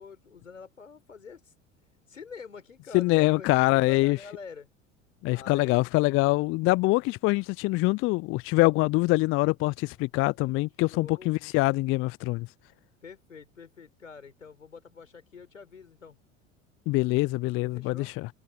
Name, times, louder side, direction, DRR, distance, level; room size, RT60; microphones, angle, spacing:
voice 1, 0.0-1.5 2.1-4.7 5.3-5.9 10.9-11.3 12.2-12.3 13.0-16.2 17.7-18.1, left 5 dB, 90° left, 5.2 m, -46 dB
voice 2, 2.9-4.2 5.2-12.5 16.9-18.3, left 22 dB, 35° left, 0.4 m, -24 dB
hypercardioid pair, 75°, 37 cm